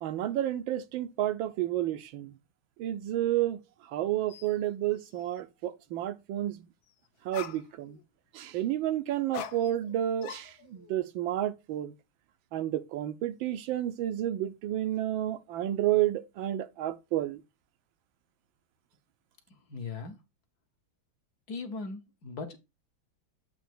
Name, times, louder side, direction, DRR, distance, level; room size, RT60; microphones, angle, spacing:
voice 1, 0.0-2.3 2.8-6.7 7.2-8.0 8.3-11.9 12.5-17.4, right 12 dB, 75° right, 1.4 m, -31 dB
sound 1, 4.3-4.6 5.0-5.4 6.9-7.0 7.3-8.0 9.3-10.0 10.2-11.0, left 9 dB, 75° left, 1.4 m, -43 dB
voice 2, 19.5-20.2 21.5-22.6, left 4 dB, 55° left, 1.4 m, -39 dB
8.0 x 2.8 x 6.0 m
omnidirectional pair, 2.2 m